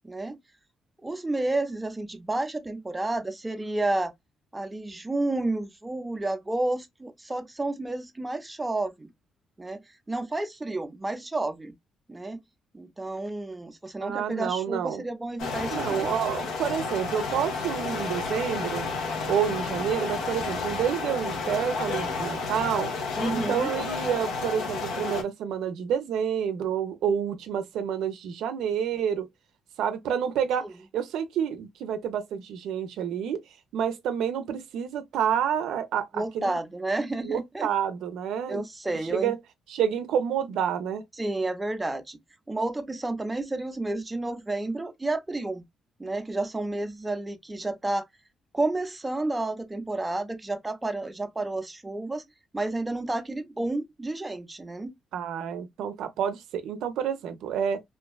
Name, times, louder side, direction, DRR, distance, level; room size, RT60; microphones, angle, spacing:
voice 1, 0.0-0.4 1.0-4.1 4.5-9.1 9.6-9.8 10.1-11.7 12.1-12.4 12.7-16.1 23.2-23.7 30.6-30.7 36.1-37.7 38.5-39.3 41.2-42.2 42.5-45.6 46.0-48.0 48.5-52.2 52.5-54.9, right 2 dB, 15° right, 0.4 m, -31 dB
voice 2, 14.0-15.0 15.7-18.9 19.3-22.9 23.3-29.3 29.8-30.7 30.9-33.4 33.7-36.6 37.2-38.6 39.1-39.4 39.7-41.0 55.1-57.8, right 8 dB, 85° right, 0.4 m, -29 dB
sound 1, 15.4-25.2, left 4 dB, 80° left, 0.7 m, -31 dB
2.5 x 2.3 x 2.2 m
cardioid pair, 90°, 0 cm